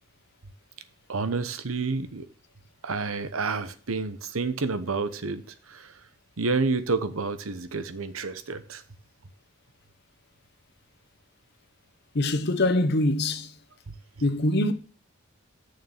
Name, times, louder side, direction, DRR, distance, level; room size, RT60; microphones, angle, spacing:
voice 1, 1.1-2.2 2.8-5.9 6.4-8.8 13.9-14.0, right 4 dB, 85° right, 0.9 m, -29 dB
voice 2, 12.1-13.5 14.2-14.7, left 1 dB, 50° left, 0.9 m, -23 dB
6.6 x 6.5 x 7.2 m
head